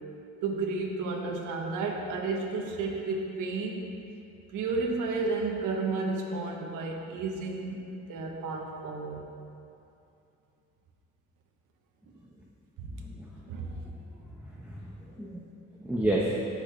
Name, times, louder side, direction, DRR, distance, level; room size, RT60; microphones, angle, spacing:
voice 1, 0.4-3.8 4.5-9.2 12.8-12.9 13.5-13.7, right 3 dB, 85° right, 0 dB, 1.3 m, -32 dB
voice 2, 13.0-13.4 13.7-13.9 14.3-15.3 15.8-16.3, right 1 dB, 5° right, -5 dB, 1.3 m, -31 dB
17.5 x 6.7 x 3.4 m, 2.7 s
cardioid pair, 90°, 30 cm